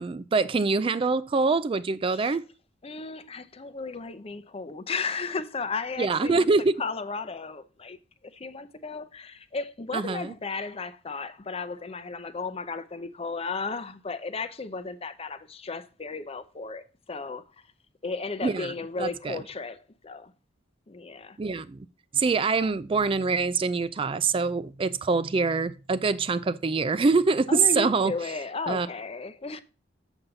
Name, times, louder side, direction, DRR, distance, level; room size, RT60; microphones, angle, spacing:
voice 1, 0.0-2.5 6.0-6.8 9.9-10.3 18.4-18.7 19.0-19.4 21.4-21.9 22.1-28.1 28.7-28.9, right 4 dB, 30° right, 0.3 m, -25 dB
voice 2, 2.8-6.5 6.8-8.0 8.2-17.4 18.0-20.3 20.9-21.4 27.5-29.6, left 4 dB, 30° left, 0.6 m, -34 dB
7.1 x 7.0 x 3.9 m
head